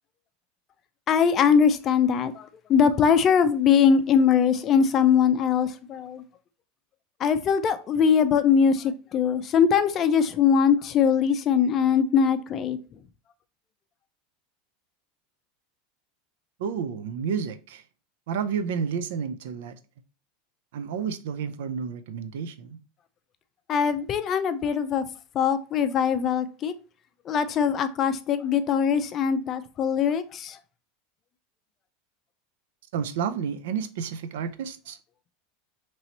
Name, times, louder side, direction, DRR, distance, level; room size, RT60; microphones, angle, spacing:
voice 1, 1.1-6.2 7.2-12.8 23.7-25.1 25.3-26.7 27.3-30.6, left 7 dB, 35° left, 0.4 m, -22 dB
voice 2, 16.6-17.8 18.3-19.8 20.7-22.8 32.9-35.0, right 7 dB, 80° right, 0.4 m, -30 dB
3.0 x 2.8 x 4.0 m
supercardioid pair, 120°, 0 cm